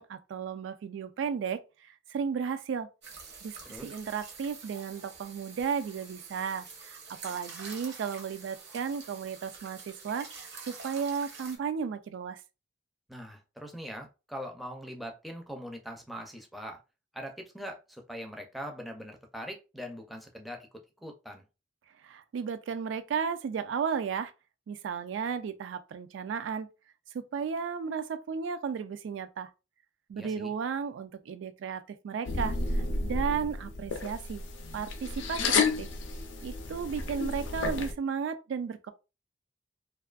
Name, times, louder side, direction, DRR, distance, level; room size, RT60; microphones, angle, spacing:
voice 1, 0.0-1.6 2.1-2.9 3.4-12.4 22.0-24.3 24.7-26.7 27.1-29.5 30.1-34.4 34.7-35.9 36.4-38.9, right 6 dB, 85° right, 0.3 m, -34 dB
sound 1, 3.0-11.6, right 4 dB, 65° right, 0.8 m, -47 dB
voice 2, 13.1-16.8 17.1-20.7 21.0-21.4 30.2-30.5, equal, ahead, 0.4 m, -42 dB
sound 2, 32.2-37.9, left 4 dB, 80° left, 0.5 m, -31 dB
2.5 x 2.3 x 2.3 m
head